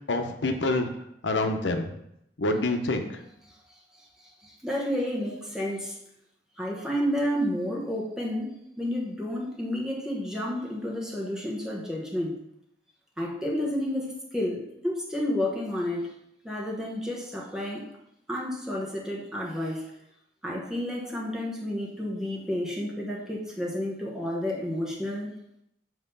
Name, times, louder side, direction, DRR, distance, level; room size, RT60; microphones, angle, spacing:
voice 1, 0.1-0.9 1.2-1.9 2.4-3.2, left 2 dB, 85° left, 5 dB, 0.8 m, -27 dB
voice 2, 3.4-6.0 6.6-12.4 13.2-16.1 16.4-17.9 18.3-19.9 20.4-25.3, left 1 dB, 5° right, -4 dB, 1.2 m, -31 dB
7.6 x 3.1 x 5.3 m, 0.79 s
head